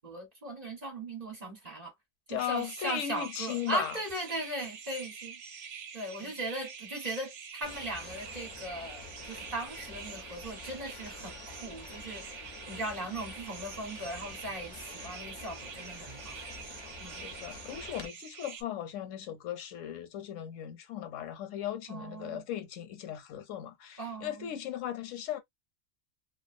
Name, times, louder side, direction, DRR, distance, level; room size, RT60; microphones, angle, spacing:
voice 1, 0.0-1.9 2.3-5.4 5.9-16.4 17.0-17.3 21.9-22.4 24.0-24.5, right 1 dB, 35° right, 0.9 m, -38 dB
voice 2, 2.3-4.0 6.2-6.3 17.2-25.4, left 11 dB, 85° left, 1.0 m, -37 dB
sound 1, 2.4-18.6, right 6 dB, 65° right, 0.8 m, -46 dB
sound 2, 7.6-18.1, left 3 dB, 45° left, 0.3 m, -48 dB
2.3 x 2.2 x 2.5 m
omnidirectional pair, 1.3 m